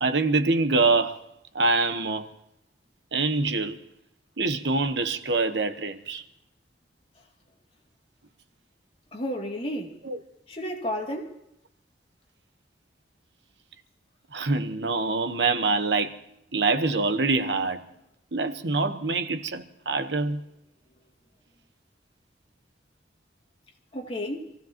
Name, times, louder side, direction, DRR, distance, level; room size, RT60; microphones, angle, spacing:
voice 1, 0.0-1.2 1.5-2.3 3.1-3.8 4.4-6.2 10.0-10.2 14.3-16.2 16.5-17.9 18.3-20.4, right 3 dB, 80° right, 1.1 m, -25 dB
voice 2, 9.1-10.0 10.5-11.4 23.9-24.5, equal, 35° left, 2.6 m, -32 dB
26.5 x 16.0 x 2.9 m
head